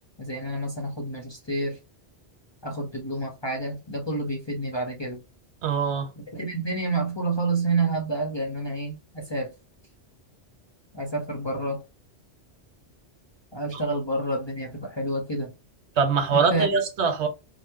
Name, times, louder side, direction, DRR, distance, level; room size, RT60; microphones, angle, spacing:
voice 1, 0.2-1.8 2.6-5.2 6.2-9.5 10.9-11.8 13.5-15.5 16.3-16.8, right 2 dB, 35° left, 0.5 m, -29 dB
voice 2, 5.6-6.1 16.0-17.3, right 5 dB, 75° right, 1.0 m, -23 dB
2.9 x 2.0 x 3.4 m
omnidirectional pair, 1.1 m